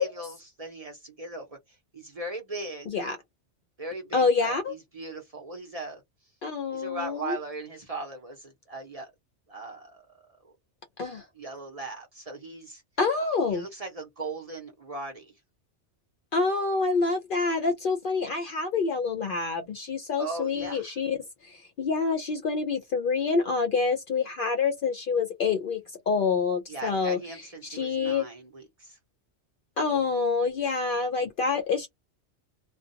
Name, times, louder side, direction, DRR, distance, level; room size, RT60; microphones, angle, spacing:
voice 1, 0.0-1.6 1.9-2.9 3.8-6.0 6.7-9.1 9.5-10.0 11.4-12.8 13.5-15.3 20.2-20.9 26.7-29.0, right 2 dB, 35° right, 0.8 m, -38 dB
voice 2, 2.9-3.2 4.1-4.7 6.4-7.4 11.0-11.3 13.0-13.7 16.3-21.2 21.4-27.4 27.7-28.3 29.8-31.9, left 4 dB, 60° left, 0.6 m, -27 dB
2.5 x 2.1 x 2.6 m
omnidirectional pair, 1.2 m